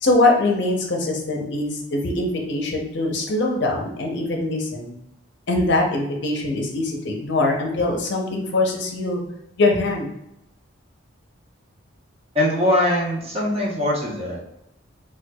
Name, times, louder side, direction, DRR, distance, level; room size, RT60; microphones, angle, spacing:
voice 1, 0.0-4.9 5.5-9.2 9.6-10.1, left 2 dB, 55° left, 0 dB, 0.6 m, -22 dB
voice 2, 12.3-14.4, left 1 dB, 30° right, -4 dB, 0.8 m, -21 dB
4.3 x 2.2 x 2.2 m, 0.83 s
head